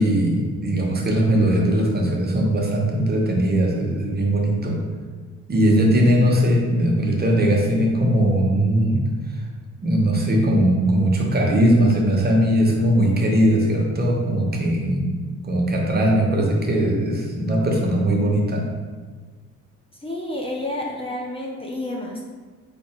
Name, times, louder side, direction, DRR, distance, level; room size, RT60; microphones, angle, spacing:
voice 1, 0.0-4.8 5.5-9.0 9.8-15.0 15.4-18.6, right 1 dB, 30° right, -1 dB, 0.9 m, -19 dB
voice 2, 20.0-22.2, left 1 dB, 20° left, -1 dB, 0.6 m, -29 dB
4.1 x 2.8 x 4.4 m, 1.4 s
cardioid pair, 90°, 30 cm